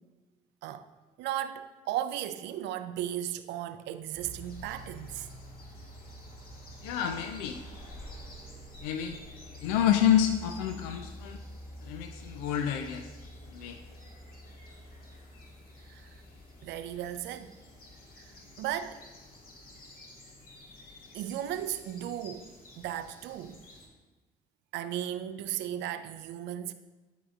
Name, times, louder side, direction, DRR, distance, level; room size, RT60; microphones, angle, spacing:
voice 1, 1.2-5.3 15.8-16.2 16.6-17.5 18.2-19.1 21.1-23.7 24.7-26.7, right 11 dB, 65° right, 0.4 m, -36 dB
sound 1, 4.1-23.9, equal, 50° left, 1.7 m, -48 dB
voice 2, 6.8-7.6 8.8-9.2 9.6-11.4 11.8-13.1 13.5-13.8, left 9 dB, 75° left, 0.4 m, -28 dB
11.0 x 5.3 x 2.4 m
hypercardioid pair, 45°, 19 cm